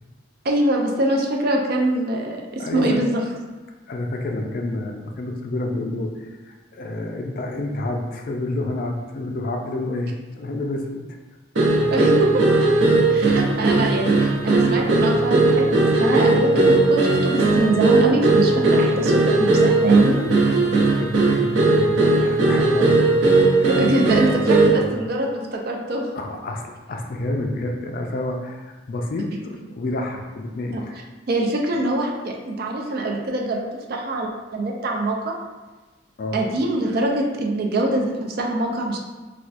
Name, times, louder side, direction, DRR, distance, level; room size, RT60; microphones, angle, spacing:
voice 1, 0.4-3.2 11.9-12.4 13.1-20.1 23.7-26.1 30.7-30.8 31.3-35.4 36.3-39.0, right 1 dB, 50° right, 1 dB, 0.4 m, -23 dB
voice 2, 2.6-3.0 3.9-11.1 12.8-13.0 14.7-14.8 16.6-16.7 20.1-23.0 23.6-23.8 26.1-31.0 36.2-36.4, left 2 dB, 45° left, 2 dB, 0.3 m, -29 dB
sound 1, 11.5-24.9, right 2 dB, 75° right, 0.7 m, -18 dB
4.3 x 2.3 x 2.5 m, 1.2 s
head